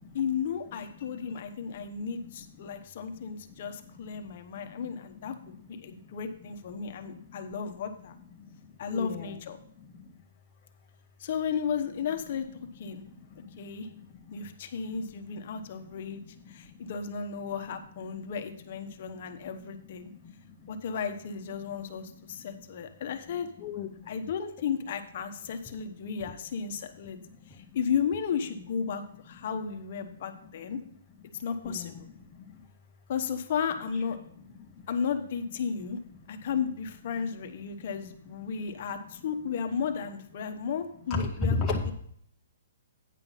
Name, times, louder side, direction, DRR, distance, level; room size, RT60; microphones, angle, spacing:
voice 1, 0.1-8.2 8.8-9.6 11.2-13.0 13.6-13.9 14.3-16.2 16.5-20.1 20.7-23.5 24.1-27.2 27.5-30.8 31.3-32.1 33.1-34.5 34.9-36.0 36.3-41.6 41.8-41.9, left 6 dB, 40° left, 7 dB, 0.9 m, -34 dB
voice 2, 8.9-9.4 23.6-23.9 31.6-31.9 41.1-41.9, left 3 dB, 10° left, -3 dB, 0.7 m, -30 dB
9.1 x 5.7 x 5.5 m, 0.66 s
hypercardioid pair, 175°, 0 cm